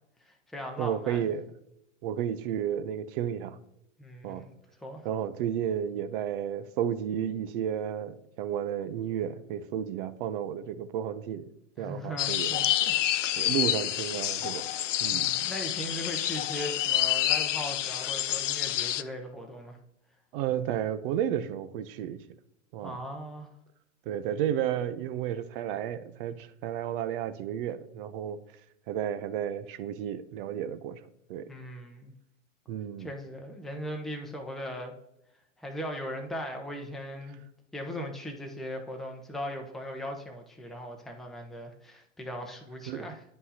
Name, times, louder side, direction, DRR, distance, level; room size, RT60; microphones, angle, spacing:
voice 1, 0.2-1.2 4.0-4.5 4.8-5.1 11.8-13.0 15.1-19.8 22.8-23.5 31.5-32.1 33.0-34.9 35.6-37.4 37.7-43.2, equal, ahead, 0.8 m, -39 dB
voice 2, 0.8-1.4 2.0-3.6 4.2-4.5 5.0-11.5 11.8-12.5 13.4-14.6 15.0-15.3 20.3-22.2 22.7-23.0 24.1-28.4 28.9-31.0 31.3-31.5 32.7-33.1 42.9-43.1, right 10 dB, 45° right, 0.6 m, -32 dB
sound 1, 12.2-19.0, left 12 dB, 75° left, 0.5 m, -28 dB
9.9 x 5.3 x 2.8 m
hypercardioid pair, 100°, 38 cm